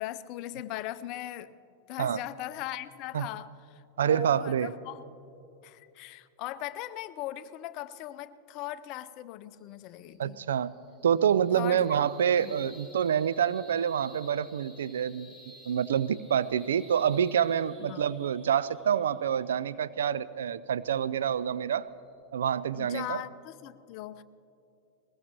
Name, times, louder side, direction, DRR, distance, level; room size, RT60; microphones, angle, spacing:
voice 1, 0.0-1.5 1.9-5.0 5.6-10.4 11.5-12.1 12.4-12.7 17.9-18.1 22.7-24.2, left 14 dB, 50° left, 14 dB, 0.6 m, -39 dB
voice 2, 4.0-4.7 10.2-10.7 11.0-15.3 15.7-21.9 22.3-23.2, right 8 dB, 75° right, 17 dB, 0.4 m, -27 dB
sound 1, 9.6-22.2, right 1 dB, 25° right, 4.1 m, -56 dB
20.5 x 20.5 x 3.0 m, 2.8 s
hypercardioid pair, 95°, 0 cm